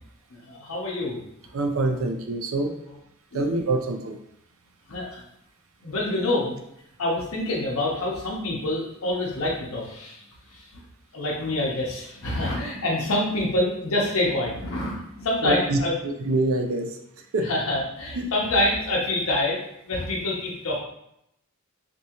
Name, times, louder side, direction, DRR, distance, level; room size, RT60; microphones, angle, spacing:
voice 1, 0.3-1.2 3.3-3.8 4.9-5.2 5.8-6.6 7.0-10.2 10.5-10.7 11.1-15.9 17.4-19.6 19.8-20.8, left 1 dB, 70° left, -3 dB, 0.7 m, -26 dB
voice 2, 1.5-2.8 3.3-4.1 15.4-16.9 17.3-17.5 18.2-18.3, right 2 dB, 70° right, 4 dB, 0.5 m, -25 dB
3.6 x 2.7 x 2.8 m, 0.78 s
head